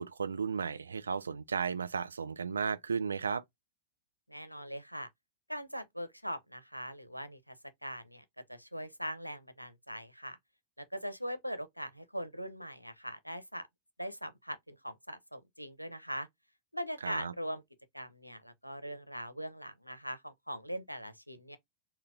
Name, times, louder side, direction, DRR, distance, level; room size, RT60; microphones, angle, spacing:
voice 1, 0.0-3.4 17.0-17.3, right 5 dB, 75° right, 0.3 m, -34 dB
voice 2, 4.3-5.1 5.5-7.5 7.8-10.4 10.8-13.6 14.0-16.3 16.7-17.6 17.9-21.6, equal, 90° left, 0.5 m, -41 dB
3.9 x 2.2 x 2.5 m
figure-of-eight pair, 90°, 0 cm